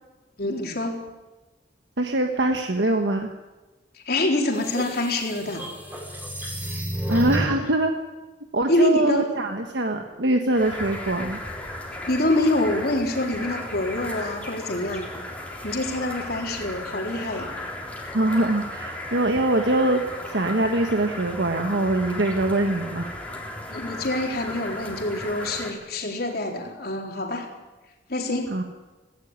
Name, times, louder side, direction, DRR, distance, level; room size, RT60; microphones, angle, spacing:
voice 1, 0.4-1.0 4.1-5.6 8.7-9.3 12.1-15.1 15.6-17.5 23.7-27.5 28.1-28.5, left 1 dB, 60° left, 1 dB, 3.9 m, -25 dB
voice 2, 2.0-3.3 7.1-7.9 8.5-11.4 18.1-23.1 28.5-28.6, right 2 dB, 75° right, 4 dB, 1.5 m, -23 dB
sound 1, 4.2-7.7, right 1 dB, 10° right, 5.7 m, -31 dB
sound 2, 10.5-25.7, left 1 dB, 10° left, 3.6 m, -35 dB
18.0 x 16.5 x 9.7 m, 1.2 s
head